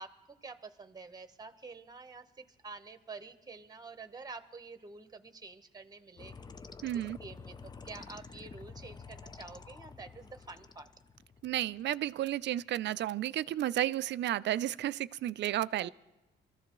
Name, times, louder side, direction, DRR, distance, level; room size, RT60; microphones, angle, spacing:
voice 1, 0.0-6.4 6.9-10.9 15.8-15.9, right 4 dB, 20° right, 9 dB, 1.0 m, -48 dB
sound 1, 6.2-12.2, left 5 dB, 20° left, 0.5 m, -50 dB
voice 2, 6.8-7.2 11.4-15.9, right 13 dB, 65° right, 17 dB, 0.4 m, -32 dB
24.0 x 14.0 x 3.1 m, 1.1 s
cardioid pair, 90°, 20 cm